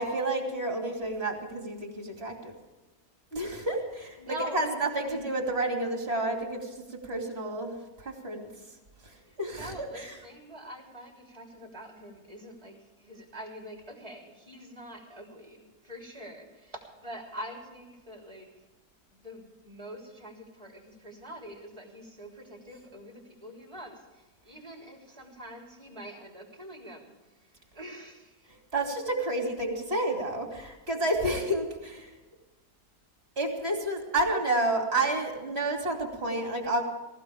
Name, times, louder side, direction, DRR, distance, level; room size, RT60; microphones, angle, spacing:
voice 1, 0.0-2.5 3.3-8.5 9.0-10.3 28.7-32.1 33.4-36.8, right 2 dB, 40° right, 2 dB, 2.9 m, -30 dB
voice 2, 4.2-5.2 9.3-18.5 19.1-27.1 27.4-28.5, equal, 20° right, 0 dB, 3.7 m, -45 dB
19.0 x 16.5 x 3.5 m, 1.2 s
omnidirectional pair, 1.7 m